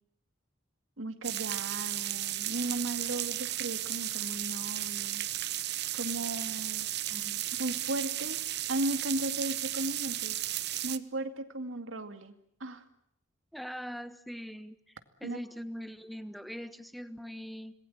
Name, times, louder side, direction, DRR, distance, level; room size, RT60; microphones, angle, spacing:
voice 1, 1.0-5.2 5.9-6.9 7.6-8.4 8.7-10.4 10.8-12.3 12.6-12.8 15.2-15.4, right 2 dB, 80° right, 9 dB, 2.3 m, -36 dB
sound 1, 1.2-11.0, right 14 dB, 55° right, 0.9 m, -34 dB
voice 2, 7.1-7.4 13.5-14.9 15.2-17.7, equal, ahead, 12 dB, 1.2 m, -42 dB
26.5 x 20.5 x 8.7 m, 0.70 s
head